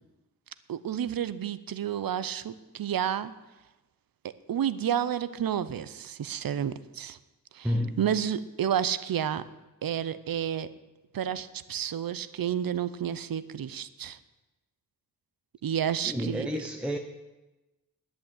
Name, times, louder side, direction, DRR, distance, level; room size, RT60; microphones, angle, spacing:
voice 1, 0.7-3.3 4.2-7.2 7.5-7.7 8.0-9.4 9.8-10.7 11.1-14.2 15.6-16.5, right 9 dB, 75° right, 15 dB, 0.7 m, -30 dB
voice 2, 7.6-8.0 16.0-17.0, equal, 5° right, 3 dB, 0.8 m, -30 dB
10.5 x 8.8 x 8.9 m, 1.1 s
wide cardioid pair, 125°, 35 cm